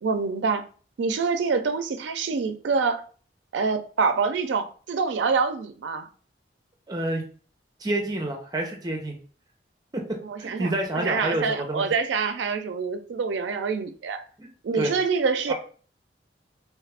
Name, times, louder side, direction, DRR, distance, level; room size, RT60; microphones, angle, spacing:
voice 1, 0.0-0.6 1.0-3.0 3.5-6.1 10.2-14.2 14.6-15.5, right 5 dB, 80° right, 0.4 m, -26 dB
voice 2, 6.9-7.3 7.8-9.2 9.9-10.0 10.4-11.9 14.4-14.5 14.7-14.9 15.5-15.6, right 1 dB, 20° right, 0.6 m, -28 dB
3.1 x 2.4 x 3.3 m
head